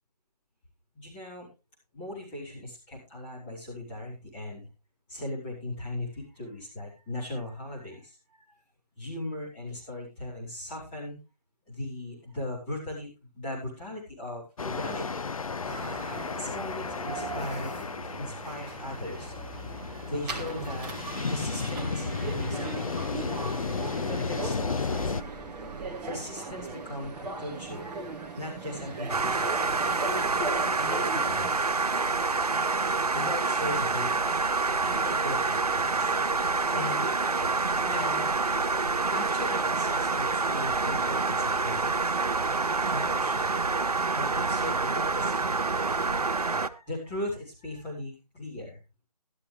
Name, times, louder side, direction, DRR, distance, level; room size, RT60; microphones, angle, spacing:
voice 1, 0.9-1.5 1.9-4.7 5.1-8.6 9.0-11.2 11.7-15.3 16.4-17.8 18.2-19.3 20.1-22.9 23.9-25.2 25.7-27.9 28.2-29.9 30.8-31.7 32.0-34.3 34.8-36.1 36.7-37.6 37.8-38.3 39.1-42.2 42.9-43.5 44.1-45.5 46.5-48.8, left 1 dB, 15° left, -6 dB, 4.6 m, -38 dB
sound 1, 14.6-25.2, left 5 dB, 60° left, 0.6 m, -34 dB
sound 2, 15.6-31.6, right 3 dB, 5° right, 0.6 m, -38 dB
sound 3, 29.1-46.7, right 4 dB, 70° right, 1.0 m, -27 dB
13.5 x 12.5 x 3.3 m, 0.28 s
figure-of-eight pair, 155°, 20 cm